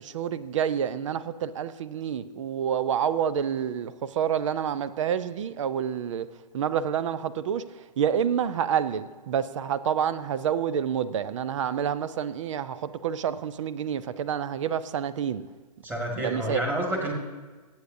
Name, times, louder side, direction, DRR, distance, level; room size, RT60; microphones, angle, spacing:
voice 1, 0.0-6.3 6.5-15.4 16.2-16.6, right 8 dB, 50° right, 0.6 m, -28 dB
voice 2, 15.8-17.1, right 1 dB, 10° right, 1.9 m, -29 dB
22.5 x 8.6 x 2.7 m
hypercardioid pair, 130°, 21 cm